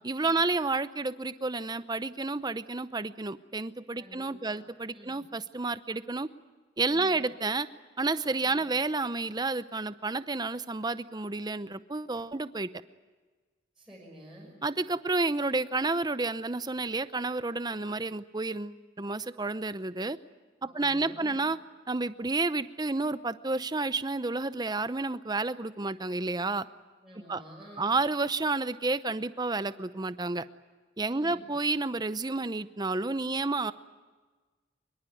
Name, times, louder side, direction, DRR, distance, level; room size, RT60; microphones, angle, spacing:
voice 1, 0.0-6.3 6.8-7.7 8.0-12.7 14.6-20.2 20.7-21.6 21.9-26.7 27.3-27.4 27.8-30.4 31.0-33.7, right 3 dB, 20° right, 14 dB, 0.7 m, -30 dB
voice 2, 4.0-4.6 4.9-5.2 6.9-7.2 8.4-8.7 13.7-14.5 20.6-21.4 27.0-27.9 31.1-31.5, equal, 5° right, -7 dB, 6.3 m, -50 dB
24.0 x 23.0 x 9.2 m, 1.3 s
head